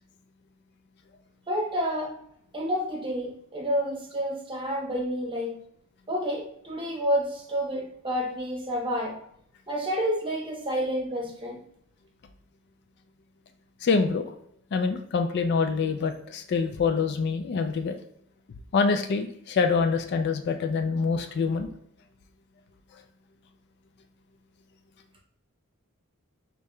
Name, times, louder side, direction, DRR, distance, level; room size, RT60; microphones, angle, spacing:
voice 1, 1.5-2.1 2.5-5.6 6.1-9.2 9.7-11.6, equal, 25° right, 0 dB, 0.9 m, -29 dB
voice 2, 13.8-14.3 14.7-18.0 18.7-21.7, left 5 dB, 50° left, 6 dB, 0.3 m, -25 dB
5.2 x 3.2 x 2.2 m, 0.71 s
head